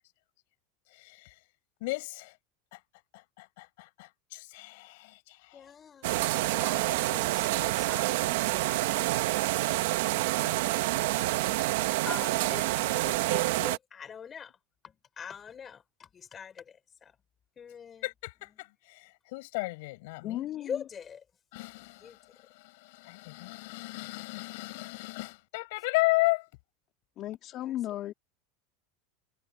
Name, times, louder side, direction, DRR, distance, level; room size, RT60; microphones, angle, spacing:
voice 1, 0.9-1.4 1.8-2.4 2.7-2.8 3.1-5.7 18.0-20.5 21.5-26.5, left 24 dB, 70° left, 6.2 m, -34 dB
voice 2, 5.5-9.1 10.0-10.6 10.8-14.5 14.8-17.1 17.6-18.1 20.5-21.2 22.0-22.2 27.6-27.7, left 7 dB, 25° left, 5.2 m, -44 dB
sound 1, 6.0-13.8, right 18 dB, 75° right, 1.2 m, -28 dB
voice 3, 20.2-20.8 27.2-28.1, left 13 dB, 40° left, 3.1 m, -35 dB
supercardioid pair, 145°, 0 cm